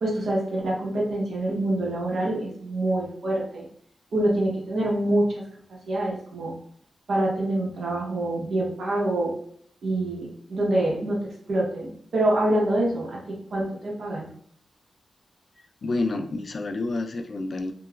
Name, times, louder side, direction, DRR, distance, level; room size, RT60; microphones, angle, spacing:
voice 1, 0.0-3.7 4.1-5.4 5.7-6.5 7.1-9.3 9.8-13.2 13.5-14.3, right 1 dB, 80° right, -3 dB, 0.9 m, -26 dB
voice 2, 15.8-17.7, left 2 dB, 55° left, 6 dB, 0.3 m, -28 dB
3.0 x 2.3 x 2.3 m, 0.63 s
cardioid pair, 70°, 0 cm